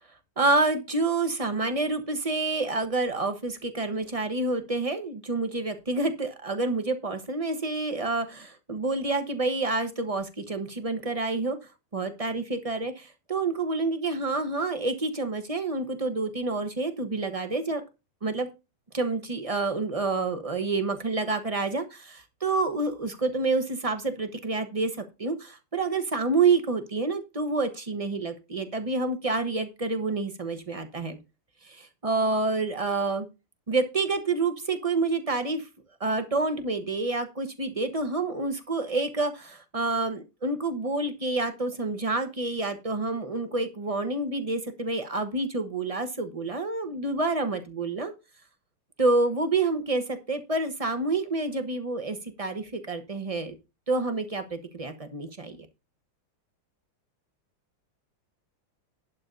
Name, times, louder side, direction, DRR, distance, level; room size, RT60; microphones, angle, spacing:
voice 1, 0.4-11.6 11.9-17.8 18.2-18.5 18.9-31.2 31.6-33.2 33.7-35.7 36.0-48.1 49.0-53.5 53.9-55.7, right 3 dB, 30° right, 8 dB, 0.6 m, -28 dB
11.5 x 3.9 x 6.7 m, 0.27 s
omnidirectional pair, 2.4 m